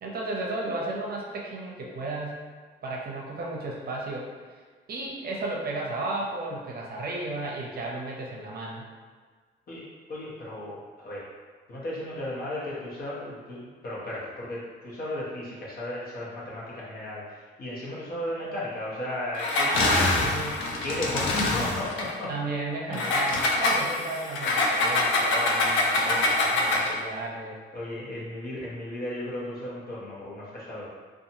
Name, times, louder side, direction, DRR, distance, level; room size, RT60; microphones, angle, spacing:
voice 1, 0.0-2.5 2.8-4.6 4.9-8.8 19.7-20.7 21.2-21.4 22.3-27.6, right 2 dB, 50° right, -2 dB, 0.6 m, -34 dB
voice 2, 9.7-11.2 11.7-17.2 17.6-20.0 20.8-22.3 22.9-23.1 27.7-30.9, left 1 dB, 50° left, -6 dB, 1.0 m, -35 dB
Engine, 19.3-22.1 22.9-27.0, left 2 dB, 75° left, 0.5 m, -25 dB
2.6 x 2.4 x 2.7 m, 1.5 s
cardioid pair, 90°, 20 cm